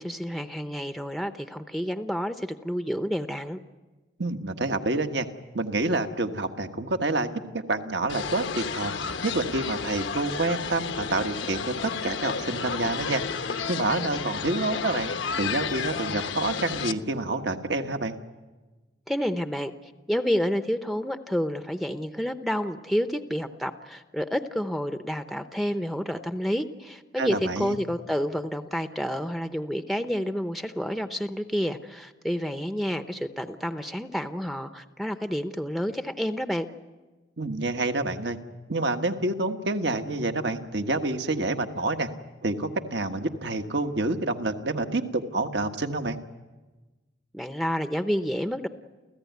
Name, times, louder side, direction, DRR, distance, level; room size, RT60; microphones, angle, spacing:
voice 1, 0.0-3.6 19.1-19.7 20.1-36.7 47.3-48.7, equal, ahead, 8 dB, 0.7 m, -29 dB
voice 2, 4.2-5.3 5.5-13.2 13.7-15.1 15.4-18.1 27.2-27.8 37.4-38.4 38.7-42.1 42.4-46.2, right 2 dB, 65° right, 6 dB, 1.5 m, -28 dB
sound 1, 8.1-16.9, left 5 dB, 85° left, 1.1 m, -32 dB
29.5 x 15.5 x 9.4 m, 1.2 s
head